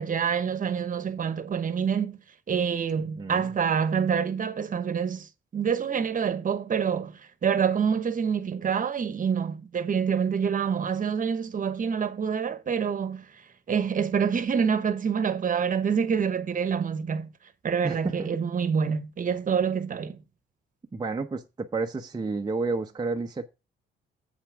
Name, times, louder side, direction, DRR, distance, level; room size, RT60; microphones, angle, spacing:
voice 1, 0.0-2.2 2.5-13.4 13.7-17.3 17.6-20.2, right 7 dB, 40° right, 1.1 m, -27 dB
voice 2, 3.2-3.5 17.8-18.3 20.9-23.5, right 3 dB, 20° right, 0.8 m, -30 dB
8.1 x 5.8 x 4.8 m
cardioid pair, 90°, 20 cm